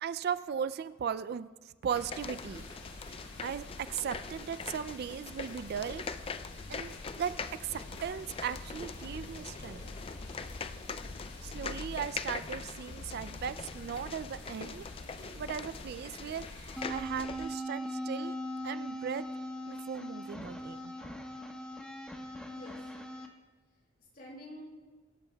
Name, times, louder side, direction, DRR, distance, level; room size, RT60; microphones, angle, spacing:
voice 1, 0.0-1.5 1.8-2.6 3.1-6.0 6.7-7.3 7.6-9.8 11.4-14.9 15.4-18.4 18.6-19.2 19.7-20.9, right 7 dB, 50° right, 14 dB, 0.3 m, -37 dB
sound 1, 1.9-16.9, left 2 dB, 65° left, 4.5 m, -51 dB
sound 2, 1.9-17.5, left 4 dB, 30° left, 0.4 m, -42 dB
sound 3, 16.8-23.3, equal, 5° left, 1.1 m, -40 dB
voice 2, 22.5-22.9 23.7-24.6, equal, 45° left, -2 dB, 4.6 m, -49 dB
24.0 x 12.5 x 2.3 m, 1.3 s
head